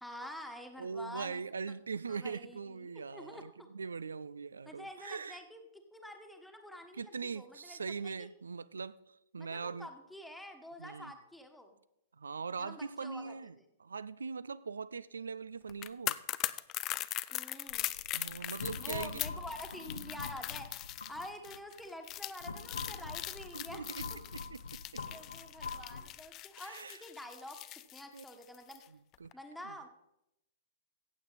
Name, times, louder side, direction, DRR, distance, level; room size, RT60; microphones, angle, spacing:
voice 1, 0.0-1.4 2.1-3.7 4.6-8.3 9.4-11.8 12.6-13.4 17.3-17.9 18.8-23.8 24.1-24.2 25.1-27.6 27.9-28.8 29.3-29.9, left 1 dB, ahead, 1.4 m, -48 dB
voice 2, 0.8-5.4 7.0-9.9 10.8-11.1 12.1-16.2 18.1-19.2 23.5-24.1 24.3-25.0 26.6-27.0 28.1-28.2 29.2-29.4 29.6-29.7, right 5 dB, 75° right, 0.4 m, -41 dB
sound 1, 15.7-28.8 29.1-29.3, left 15 dB, 30° left, 0.4 m, -40 dB
sound 2, 17.7-21.6 22.1-26.0, left 4 dB, 70° left, 0.9 m, -44 dB
15.0 x 8.4 x 4.0 m
figure-of-eight pair, 105°, 0 cm